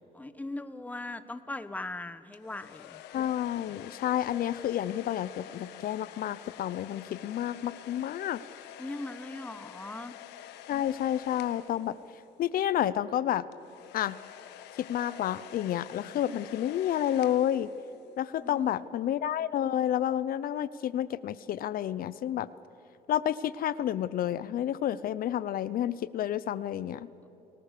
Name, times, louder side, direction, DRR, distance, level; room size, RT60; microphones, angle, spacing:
voice 1, 0.1-3.0 8.8-10.1 18.4-18.8, left 2 dB, 10° left, 12 dB, 1.1 m, -39 dB
sound 1, 2.3-12.5 13.5-18.2, left 11 dB, 85° left, 1.3 m, -48 dB
voice 2, 3.1-8.4 10.7-12.0 12.4-13.4 13.9-14.2 14.8-17.7 18.2-22.5 23.1-27.1, left 11 dB, 60° left, 17 dB, 0.7 m, -30 dB
29.0 x 19.0 x 6.8 m, 3.0 s
cardioid pair, 110°, 17 cm